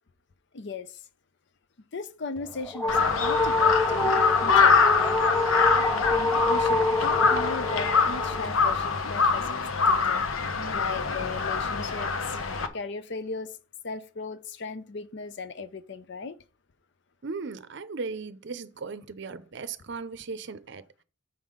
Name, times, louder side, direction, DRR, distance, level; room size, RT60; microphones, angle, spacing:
voice 1, 0.5-1.0 1.9-4.9 5.9-12.4 12.7-13.6 13.8-16.4, left 3 dB, 55° left, 0.6 m, -37 dB
sound 1, 2.4-8.5, left 2 dB, 5° left, 0.6 m, -27 dB
Crow, 2.9-12.7, left 5 dB, 75° left, 0.9 m, -24 dB
voice 2, 17.2-20.9, right 4 dB, 55° right, 0.6 m, -37 dB
7.1 x 5.5 x 5.0 m
head